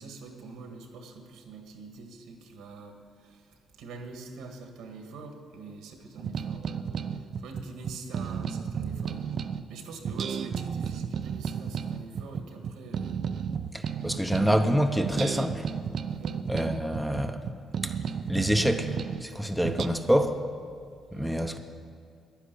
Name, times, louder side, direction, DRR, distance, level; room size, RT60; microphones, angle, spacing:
voice 1, 0.0-3.0 3.2-3.4 3.8-9.2 9.7-13.2 16.2-16.4 21.1-21.4, right 4 dB, 90° right, 4 dB, 1.7 m, -44 dB
sound 1, 6.2-9.6 10.0-14.7 15.0-19.3 19.6-19.9, right 7 dB, 55° right, 0.6 m, -33 dB
voice 2, 13.7-15.7 16.5-17.4 17.8-17.9 18.3-19.0 19.2-20.4 21.1-21.6, equal, ahead, 4 dB, 0.8 m, -26 dB
11.0 x 10.0 x 8.3 m, 2.3 s
cardioid pair, 90°, 0 cm